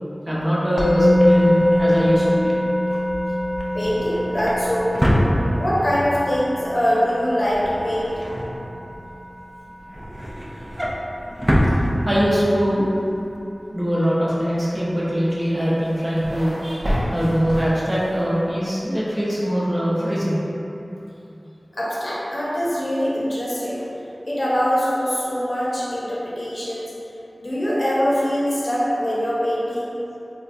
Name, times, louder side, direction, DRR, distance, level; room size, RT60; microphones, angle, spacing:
voice 1, 0.3-2.5 2.9-3.0 11.7-13.0 13.7-20.4, equal, 25° right, -9 dB, 0.8 m, -22 dB
Musical instrument, 0.8-11.9, left 1 dB, 85° left, 0.4 m, -24 dB
Drawer open or close, 0.9-6.0 6.3-6.7 6.9-9.1 9.5-12.5 12.9-13.1 13.3-13.4, equal, 10° right, 0.4 m, -26 dB
voice 2, 3.7-5.2 5.6-8.1 21.7-23.8 24.2-26.9 27.4-29.9, equal, 55° left, -7 dB, 0.7 m, -23 dB
sound 1, 15.6-18.3, equal, 65° right, 0.6 m, -29 dB
3.9 x 2.2 x 2.5 m, 3.0 s
wide cardioid pair, 40°, 0 cm